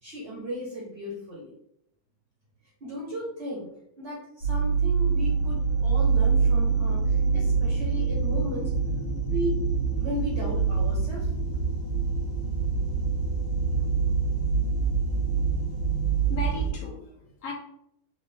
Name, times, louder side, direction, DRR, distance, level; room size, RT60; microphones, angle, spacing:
voice 1, 0.0-1.5 2.8-3.7 4.0-8.7 9.3-9.6 10.0-11.3, equal, 45° right, -5 dB, 1.0 m, -35 dB
sound 1, 4.4-16.7, right 5 dB, 80° left, 1.9 m, -25 dB
voice 2, 16.3-17.5, left 3 dB, 50° left, -2 dB, 1.0 m, -36 dB
3.9 x 2.6 x 3.4 m, 0.77 s
omnidirectional pair, 2.3 m